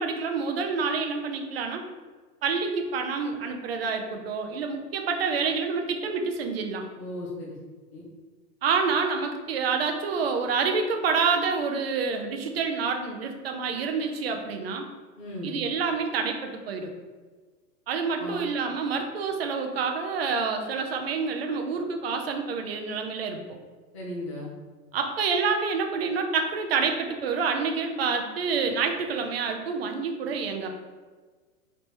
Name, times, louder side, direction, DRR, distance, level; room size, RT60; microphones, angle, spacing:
voice 1, 0.0-1.8 2.4-6.8 8.6-14.9 15.4-16.9 17.9-23.4 24.9-30.7, right 5 dB, 40° right, 4 dB, 0.5 m, -28 dB
voice 2, 7.0-7.6 7.9-8.0 15.2-15.5 18.2-18.4 23.9-24.5, left 1 dB, 20° left, -4 dB, 0.4 m, -36 dB
4.3 x 3.2 x 3.2 m, 1.4 s
hypercardioid pair, 165°, 48 cm